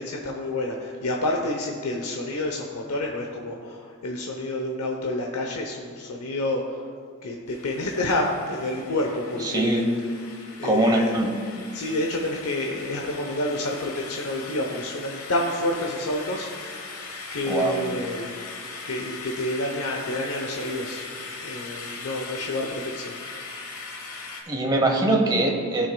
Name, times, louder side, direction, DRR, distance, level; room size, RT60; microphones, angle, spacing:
voice 1, 0.0-6.8 7.2-9.8 10.6-11.1 11.7-16.5 17.3-18.3 18.8-23.1, left 1 dB, 85° left, 1 dB, 0.8 m, -29 dB
sound 1, 7.5-24.4, left 4 dB, 70° left, 1.2 m, -39 dB
voice 2, 9.4-9.9 10.6-11.3 17.4-17.8 24.5-25.9, right 1 dB, 20° right, 2 dB, 0.8 m, -22 dB
15.5 x 6.2 x 2.2 m, 2.1 s
head